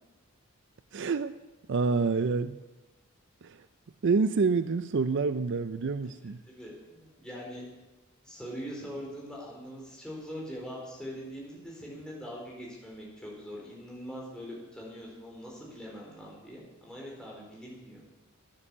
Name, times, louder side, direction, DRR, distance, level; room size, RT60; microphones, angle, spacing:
voice 1, 0.9-1.3 1.7-2.6 3.4-3.6 4.0-6.4, right 4 dB, 55° right, 13 dB, 0.4 m, -27 dB
voice 2, 6.0-7.6 8.2-18.0, equal, 5° left, -4 dB, 4.2 m, -42 dB
14.0 x 9.9 x 7.1 m, 1.1 s
head